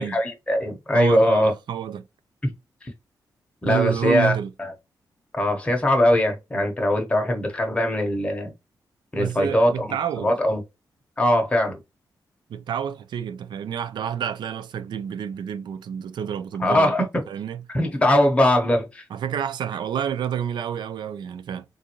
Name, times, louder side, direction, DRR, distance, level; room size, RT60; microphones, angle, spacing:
voice 1, 0.0-1.5 2.4-2.5 2.8-2.9 3.6-4.3 4.6-4.7 5.3-8.5 9.1-9.9 10.2-10.6 11.2-11.8 16.6-17.1 17.7-19.0, left 1 dB, 15° left, 0.9 m, -21 dB
voice 2, 0.9-2.1 3.6-4.5 9.2-10.3 12.5-16.9 17.3-17.6 19.1-21.6, right 9 dB, 90° right, 0.4 m, -29 dB
3.8 x 2.6 x 2.9 m
wide cardioid pair, 145°, 8 cm